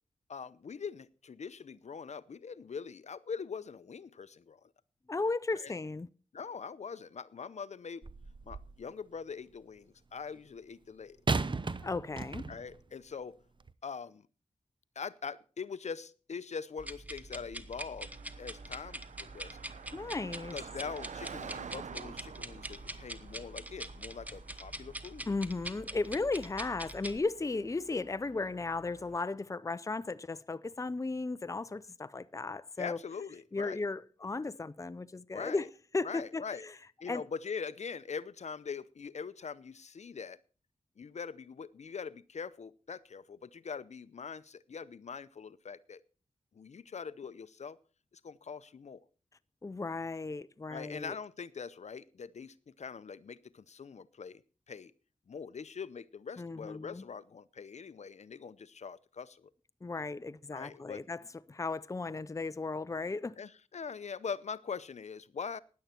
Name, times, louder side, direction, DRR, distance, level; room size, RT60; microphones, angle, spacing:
voice 1, 0.3-4.6 5.5-5.7 6.3-8.0 8.4-11.2 12.5-13.3 13.8-14.3 15.0-18.1 18.4-19.6 20.5-25.3 32.8-33.8 35.3-35.7 36.0-36.6 37.0-40.4 41.0-46.0 46.5-47.8 48.2-49.0 50.7-54.4 54.7-54.9 55.3-59.5 60.5-61.0 63.4-65.6, left 6 dB, 65° left, 0.6 m, -43 dB
voice 2, 5.1-6.1 11.8-12.5 19.9-20.5 25.3-33.0 33.5-35.7 35.9-36.7 37.1-37.2 49.6-51.2 56.4-57.0 59.8-61.2 61.5-63.4, left 3 dB, 25° left, 0.6 m, -35 dB
sound 1, 8.0-8.8 11.3-12.8 13.6-13.7, right 3 dB, 40° right, 0.7 m, -35 dB
sound 2, 16.8-27.2, right 1 dB, 10° right, 1.1 m, -44 dB
Car passing by, 18.0-29.2, right 6 dB, 75° right, 0.7 m, -50 dB
16.0 x 10.5 x 4.4 m
wide cardioid pair, 65°, 12 cm